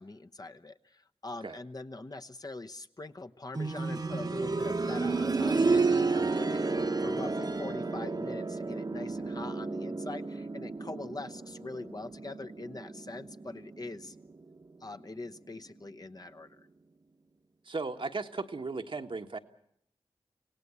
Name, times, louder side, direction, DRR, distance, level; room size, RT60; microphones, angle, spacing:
voice 1, 0.0-14.1 14.8-16.7, left 2 dB, 40° left, 7 dB, 1.0 m, -43 dB
sound 1, 3.5-14.3 14.6-14.7 15.6-15.7, right 3 dB, 45° right, 1.1 m, -31 dB
voice 2, 17.6-19.4, right 3 dB, 60° right, 5 dB, 1.3 m, -36 dB
26.5 x 17.5 x 8.3 m, 0.73 s
cardioid pair, 40°, 10 cm